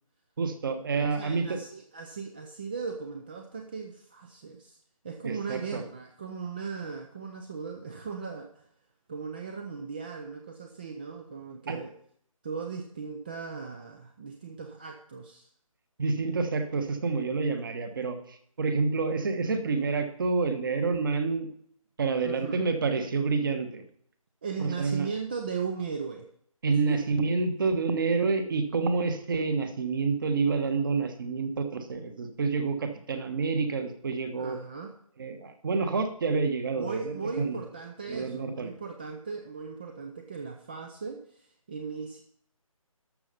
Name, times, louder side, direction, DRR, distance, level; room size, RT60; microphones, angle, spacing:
voice 1, 0.4-1.6 5.2-5.8 11.7-11.8 16.0-21.5 22.0-23.8 24.6-25.1 26.6-34.6 35.2-37.6 38.1-38.7, right 4 dB, 35° right, 8 dB, 1.3 m, -28 dB
voice 2, 1.0-4.8 5.0-8.7 9.1-11.9 12.4-15.5 22.2-22.6 24.4-26.3 26.7-27.0 34.4-35.0 36.7-42.2, right 5 dB, 15° right, 4 dB, 0.5 m, -37 dB
12.5 x 6.7 x 5.5 m, 0.63 s
figure-of-eight pair, 150°, 18 cm